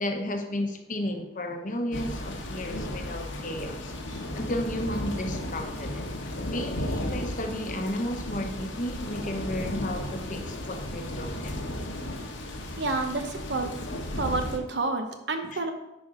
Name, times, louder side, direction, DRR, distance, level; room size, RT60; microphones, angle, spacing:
voice 1, 0.0-11.6 15.5-15.6, left 1 dB, 40° left, 4 dB, 0.9 m, -33 dB
sound 1, 1.9-14.6, left 1 dB, 75° left, 1.1 m, -34 dB
voice 2, 12.8-13.7 14.2-15.7, right 3 dB, 60° right, 6 dB, 0.9 m, -29 dB
9.7 x 5.2 x 3.8 m, 0.96 s
head